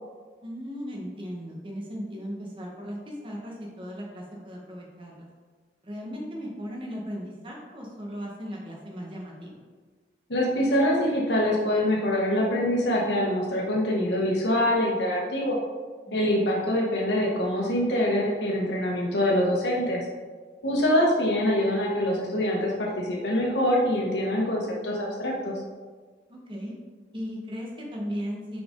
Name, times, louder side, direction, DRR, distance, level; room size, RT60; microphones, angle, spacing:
voice 1, 0.4-5.3 5.8-9.6 16.1-16.2 26.3-26.7 27.1-28.6, equal, 30° right, -2 dB, 1.2 m, -37 dB
voice 2, 10.3-15.6 16.1-20.0 20.6-25.5, left 1 dB, 90° left, -3 dB, 1.3 m, -24 dB
6.0 x 5.0 x 3.8 m, 1.4 s
head